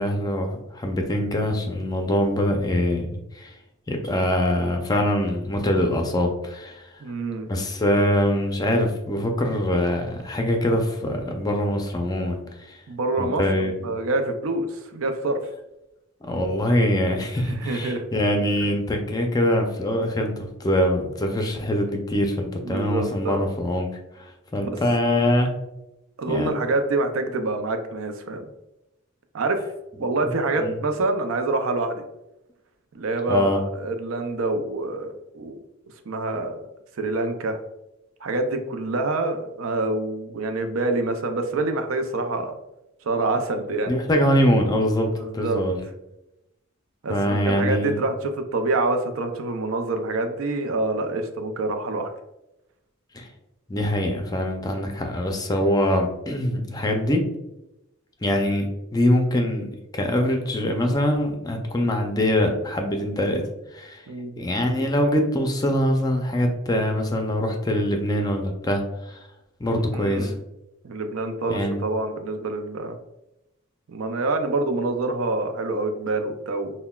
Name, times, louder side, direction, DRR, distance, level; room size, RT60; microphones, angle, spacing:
voice 1, 0.0-3.1 3.3-3.5 3.9-6.9 7.5-12.4 12.7-12.8 13.2-13.9 16.3-23.9 24.2-25.5 26.3-26.6 30.2-30.3 30.6-30.8 33.3-33.6 43.9-45.8 47.1-47.9 53.1-53.3 53.7-57.2 58.2-59.6 59.9-63.4 63.7-64.0 64.4-69.2 69.6-70.3 71.5-71.8, left 1 dB, 20° left, 3 dB, 0.4 m, -23 dB
voice 2, 7.0-7.5 12.9-15.4 17.5-18.0 22.6-23.4 26.2-28.4 29.3-29.6 30.0-32.0 32.9-35.6 36.1-36.6 37.0-37.6 38.2-42.6 43.0-43.9 45.2-45.6 47.0-52.1 64.1-64.4 69.9-70.3 70.8-73.0 73.9-76.7, right 2 dB, 85° right, 6 dB, 0.5 m, -26 dB
5.6 x 2.2 x 2.3 m, 0.92 s
head